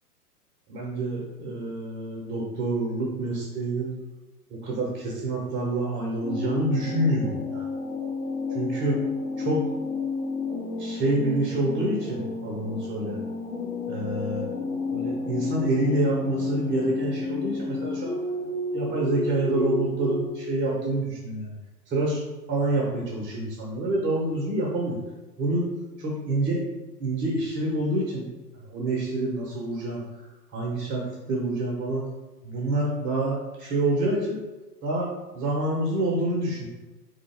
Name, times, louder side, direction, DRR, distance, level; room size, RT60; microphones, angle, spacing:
voice 1, 0.7-3.9 4.5-7.6 8.5-9.0 9.4-9.6 10.8-13.2 13.9-14.5 14.9-18.2 18.7-21.5 21.9-22.2 22.5-25.0 25.4-25.7 26.0-26.6 27.0-28.2 28.7-30.0 30.5-31.0 31.3-32.0 32.4-34.4 34.8-35.1 35.3-36.7, right 1 dB, 20° right, -3 dB, 0.8 m, -27 dB
sound 1, 6.2-20.3, left 3 dB, 45° left, 1.3 m, -31 dB
4.0 x 3.5 x 3.4 m, 1.1 s
figure-of-eight pair, 110°, 47 cm